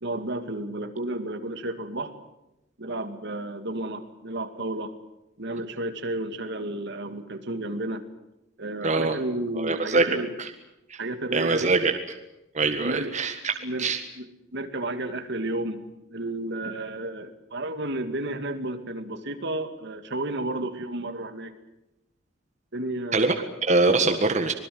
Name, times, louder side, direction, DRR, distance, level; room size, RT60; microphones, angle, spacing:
voice 1, 0.0-2.1 2.8-4.9 5.4-8.0 8.6-10.3 11.0-11.7 12.8-13.1 13.6-13.9 14.2-21.5 22.7-23.5, right 1 dB, 65° right, 9 dB, 2.3 m, -32 dB
voice 2, 8.8-9.2 9.6-10.5 10.9-11.0 11.3-11.9 12.5-13.5 13.8-14.0 23.1-23.3 23.6-24.5, right 3 dB, 40° right, 6 dB, 1.7 m, -23 dB
25.5 x 20.5 x 7.9 m, 0.91 s
head